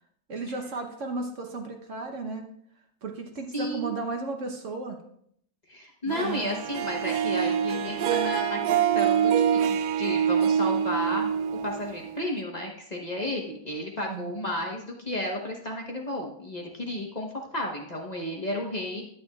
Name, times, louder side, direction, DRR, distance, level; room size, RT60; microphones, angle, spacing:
voice 1, 0.3-2.5 3.0-5.0 6.0-6.5 14.1-14.3, right 3 dB, 50° right, 3 dB, 1.0 m, -34 dB
voice 2, 3.5-3.9 5.7-11.3 11.6-19.0, left 1 dB, 30° left, -1 dB, 0.9 m, -33 dB
Harp, 6.1-12.4, right 8 dB, 75° right, 1.0 m, -25 dB
11.0 x 9.5 x 2.4 m, 0.68 s
omnidirectional pair, 2.2 m